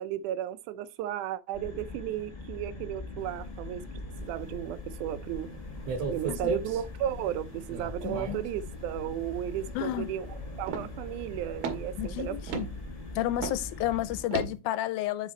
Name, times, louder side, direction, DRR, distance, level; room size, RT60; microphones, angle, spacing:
voice 1, 0.0-5.5 6.1-10.3 10.6-12.4, right 12 dB, 90° right, 2.1 m, -34 dB
sound 1, 1.5-14.2, left 2 dB, 25° left, 0.9 m, -42 dB
sound 2, 3.2-13.2, left 4 dB, 50° left, 3.6 m, -51 dB
sound 3, 5.9-6.8 7.7-8.5 10.7-11.0 11.5-12.0 12.5-12.8 13.4-13.6 14.3-14.6, right 4 dB, 65° right, 2.2 m, -34 dB
voice 2, 8.0-8.4 9.8-10.1 12.0-12.7 13.2-15.3, left 13 dB, 90° left, 2.1 m, -31 dB
7.4 x 4.9 x 4.2 m
omnidirectional pair, 3.5 m